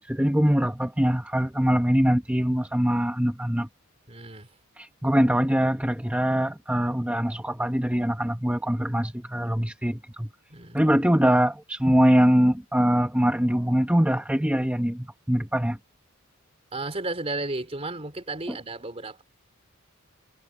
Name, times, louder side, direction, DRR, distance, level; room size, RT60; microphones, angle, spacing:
voice 1, 0.0-3.7 4.8-10.3 10.7-15.8 18.5-18.6, equal, 5° right, 1.3 m, -23 dB
voice 2, 4.1-4.6 10.5-10.8 16.7-19.2, right 2 dB, 25° right, 3.7 m, -33 dB
head